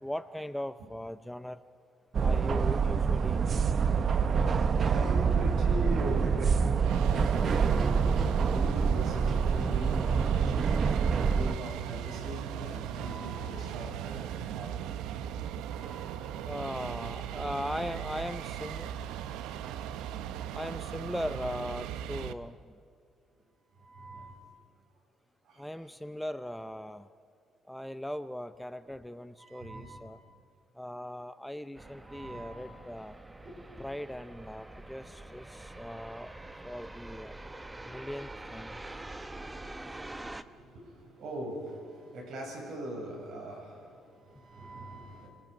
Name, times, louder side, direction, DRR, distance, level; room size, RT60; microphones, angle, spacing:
voice 1, 0.0-1.6 2.2-3.6 16.4-18.9 20.5-22.6 25.6-27.1 27.7-30.2 30.8-33.1 33.8-36.3 36.6-37.3 37.9-38.8, left 1 dB, 5° left, 12 dB, 0.6 m, -39 dB
sound 1, 2.1-11.5, right 6 dB, 45° right, 0.7 m, -26 dB
voice 2, 4.5-10.9 11.2-15.0 15.6-16.2 23.7-24.4 25.4-25.7 28.8-28.9 29.4-30.3 32.0-32.6 40.4-45.3, equal, 65° right, 0 dB, 7.2 m, -41 dB
sound 2, 6.7-22.3, right 10 dB, 85° right, 0.8 m, -38 dB
sound 3, 31.7-40.4, right 2 dB, 15° right, 0.9 m, -45 dB
29.5 x 19.5 x 5.2 m, 2.3 s
cardioid pair, 95°, 0 cm